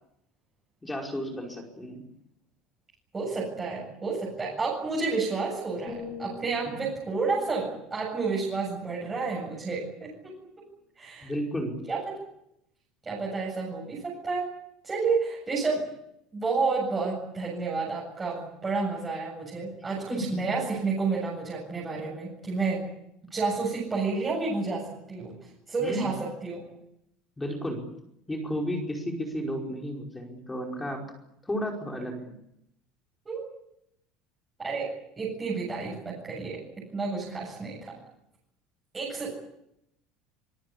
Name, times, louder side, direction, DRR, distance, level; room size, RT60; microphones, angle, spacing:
voice 1, 0.8-2.0 6.7-6.8 11.2-11.7 20.1-20.4 25.8-26.0 27.4-27.8 28.3-31.0 31.4-32.3, equal, 5° left, 1 dB, 5.1 m, -33 dB
voice 2, 3.1-10.3 11.0-11.3 11.9-12.0 13.1-14.5 14.8-15.8 16.3-22.8 23.2-25.3 25.7-26.7 33.2-33.5 34.6-34.9 35.2-38.0 38.9-39.3, right 4 dB, 15° right, -5 dB, 7.8 m, -30 dB
sound 1, 5.9-9.8 10.3-10.5, left 4 dB, 25° left, 7.3 m, -46 dB
25.0 x 23.0 x 8.6 m, 0.79 s
cardioid pair, 175°, 0 cm